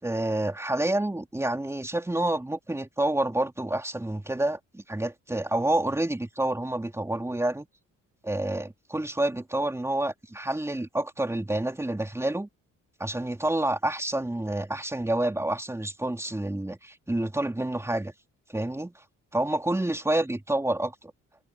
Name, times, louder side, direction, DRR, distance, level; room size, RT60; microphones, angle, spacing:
voice 1, 0.0-7.7 8.2-12.5 13.0-18.1 18.5-18.9 19.3-21.1, right 1 dB, 10° right, 3.2 m, -28 dB
cardioid pair, 90°, 30 cm